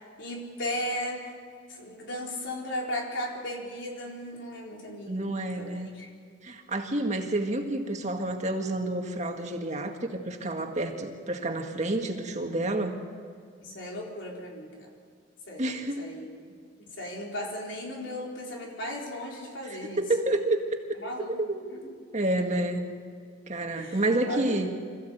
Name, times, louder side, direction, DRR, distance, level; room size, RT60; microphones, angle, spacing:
voice 1, 0.2-1.3 1.7-5.3 5.6-6.1 13.6-14.9 15.5-16.5 16.8-20.0 21.0-21.4 21.9-22.0 23.7-24.6, left 1 dB, 70° left, -1 dB, 4.1 m, -36 dB
voice 2, 5.1-5.9 6.4-13.0 15.6-16.0 19.6-21.8 22.1-22.9 23.5-24.8, right 2 dB, 40° right, 3 dB, 1.9 m, -29 dB
26.0 x 15.0 x 8.1 m, 2.1 s
head